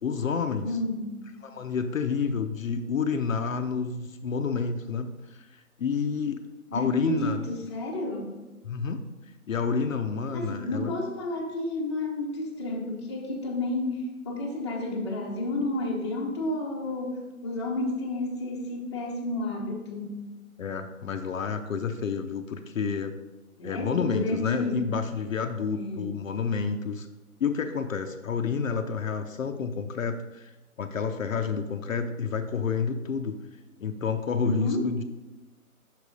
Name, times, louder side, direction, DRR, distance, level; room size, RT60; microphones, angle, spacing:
voice 1, 0.0-0.8 1.4-6.4 6.7-7.4 8.6-9.0 9.5-10.9 20.6-23.1 23.6-27.1 27.4-30.5 30.8-33.4 33.8-35.0, left 5 dB, 65° left, 7 dB, 0.6 m, -29 dB
voice 2, 0.6-1.1 6.7-8.3 10.3-20.2 23.6-24.8 25.7-26.1 34.4-34.8, left 2 dB, 20° left, -2 dB, 0.8 m, -31 dB
6.0 x 4.9 x 5.1 m, 1.1 s
hypercardioid pair, 155°, 44 cm